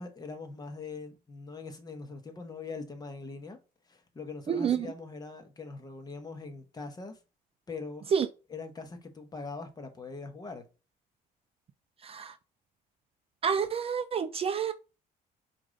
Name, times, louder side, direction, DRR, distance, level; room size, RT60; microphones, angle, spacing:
voice 1, 0.0-3.6 3.9-7.2 7.7-8.0 8.5-10.7, left 4 dB, 25° left, 1.0 m, -42 dB
voice 2, 4.5-4.8 8.1-8.3 12.0-12.4 13.4-14.7, right 7 dB, 35° right, 0.4 m, -28 dB
4.8 x 2.6 x 3.8 m
cardioid pair, 110°, 17 cm